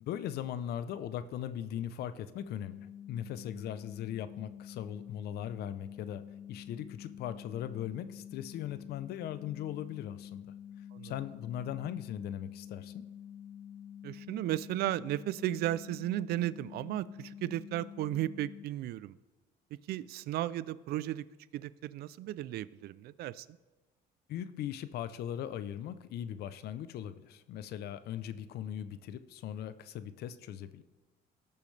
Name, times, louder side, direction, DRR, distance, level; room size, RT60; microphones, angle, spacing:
voice 1, 0.0-10.5 11.0-13.0 24.3-30.8, left 10 dB, 70° left, 13 dB, 0.6 m, -39 dB
sound 1, 2.4-18.7, left 9 dB, 25° left, 1.3 m, -48 dB
voice 2, 14.0-19.2 19.9-21.2 21.5-23.5, right 14 dB, 70° right, 18 dB, 0.4 m, -35 dB
17.5 x 6.9 x 3.3 m, 1.2 s
cardioid pair, 110°, 17 cm